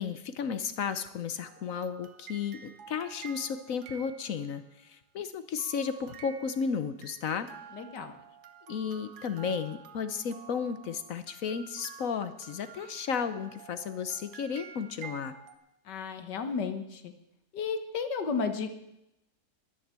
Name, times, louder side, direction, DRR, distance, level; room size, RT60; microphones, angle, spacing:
voice 1, 0.0-7.5 8.7-15.3, left 6 dB, 60° left, 11 dB, 1.1 m, -33 dB
sound 1, 1.4-4.8 5.6-15.6, right 7 dB, 65° right, 1.6 m, -50 dB
voice 2, 7.7-8.1 15.9-17.1 17.5-18.7, left 5 dB, 80° left, 8 dB, 1.9 m, -33 dB
11.5 x 10.5 x 7.4 m, 0.87 s
omnidirectional pair, 1.8 m